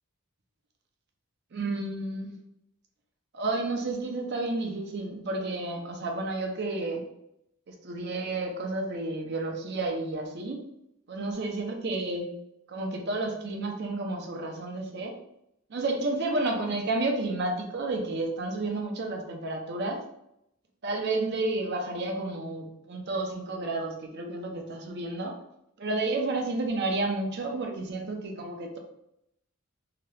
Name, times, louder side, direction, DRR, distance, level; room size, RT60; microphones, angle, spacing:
voice 1, 1.5-2.3 3.3-7.0 7.7-10.6 11.1-12.3 12.7-15.2 15.7-20.0 20.8-25.3 25.8-28.8, right 2 dB, 50° right, 3 dB, 0.5 m, -31 dB
2.8 x 2.3 x 3.2 m, 0.79 s
head